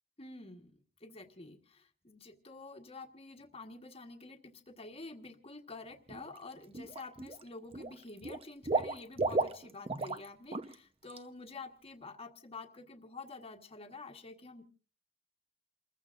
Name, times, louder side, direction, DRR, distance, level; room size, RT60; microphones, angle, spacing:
voice 1, 0.2-14.6, left 3 dB, 30° left, 5 dB, 1.4 m, -49 dB
Water / Liquid, 6.1-6.4 6.7-7.4 7.7-10.2 10.5-10.7 11.1-11.2, right 3 dB, 30° right, 0.9 m, -34 dB
29.0 x 15.0 x 2.5 m, 0.37 s
head